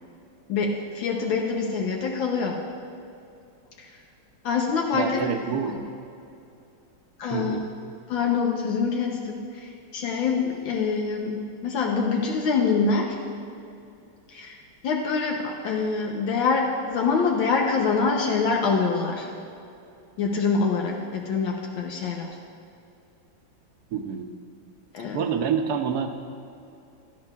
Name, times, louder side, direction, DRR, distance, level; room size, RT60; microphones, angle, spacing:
voice 1, 0.5-2.6 3.8-3.9 4.4-5.1 5.7-5.8 7.2-7.6 8.1-13.2 14.3-14.6 14.8-19.3 20.2-22.3 24.9-25.2, left 5 dB, 80° left, 0 dB, 1.7 m, -25 dB
voice 2, 4.9-5.8 7.3-7.6 23.9-24.3 25.1-26.1, right 7 dB, 65° right, 6 dB, 1.1 m, -27 dB
17.0 x 12.0 x 2.4 m, 2.7 s
omnidirectional pair, 2.1 m